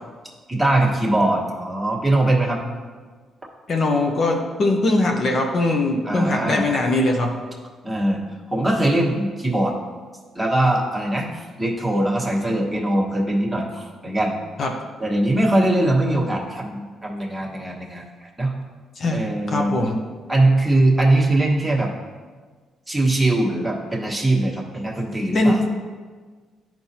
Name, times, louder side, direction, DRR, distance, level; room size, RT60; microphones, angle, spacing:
voice 1, 0.5-2.6 6.0-6.7 7.8-8.2 8.5-9.7 10.3-14.4 15.0-18.5 19.1-19.7 20.3-21.9 22.9-25.6, right 1 dB, 5° right, -3 dB, 1.4 m, -21 dB
voice 2, 3.7-7.3 14.6-14.7 19.0-20.0 25.3-25.7, left 2 dB, 50° left, 1 dB, 0.8 m, -21 dB
10.5 x 4.4 x 2.8 m, 1.5 s
cardioid pair, 90°, 0 cm